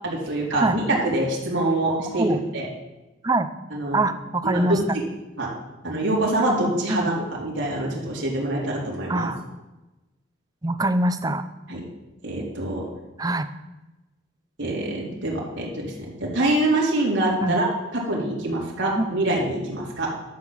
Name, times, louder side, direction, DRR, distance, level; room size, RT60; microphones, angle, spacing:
voice 1, 0.0-2.7 3.7-4.0 4.4-4.8 5.4-5.5 5.8-9.3 11.7-11.8 12.2-12.8 14.6-15.9 16.2-17.7 17.9-20.1, right 1 dB, 65° right, -4 dB, 3.6 m, -25 dB
voice 2, 3.9-4.8 6.9-7.1 9.1-9.4 10.6-11.4 13.2-13.5 17.4-17.6 18.9-19.1, right 2 dB, 20° right, 10 dB, 0.5 m, -23 dB
12.0 x 6.0 x 7.4 m, 1.0 s
head